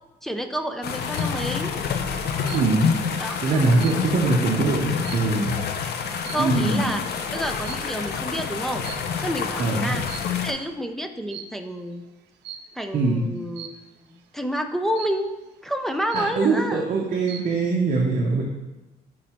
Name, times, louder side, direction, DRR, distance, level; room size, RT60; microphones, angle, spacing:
voice 1, 0.2-1.7 3.2-3.7 6.3-8.8 9.2-10.1 10.4-12.1 12.8-13.7 14.1-15.3 15.6-16.9, equal, ahead, 5 dB, 0.4 m, -29 dB
sound 1, 0.8-10.5, left 6 dB, 70° left, 0.6 m, -28 dB
sound 2, 0.8-1.4 2.5-3.0 3.4-5.6 6.2-6.6 7.6-8.0 8.8-9.4 9.9-10.6 11.3-11.7 12.4-12.8 13.6-14.0 15.0-15.4 15.8-15.9 16.1-16.7 17.1-17.6, right 8 dB, 85° right, 0.5 m, -41 dB
voice 2, 2.5-2.9 3.4-5.5 6.3-7.0 9.6-10.0 12.9-13.2 16.1-18.4, right 3 dB, 50° right, -1 dB, 0.8 m, -22 dB
6.5 x 4.0 x 4.4 m, 1.1 s
cardioid pair, 150°, 17 cm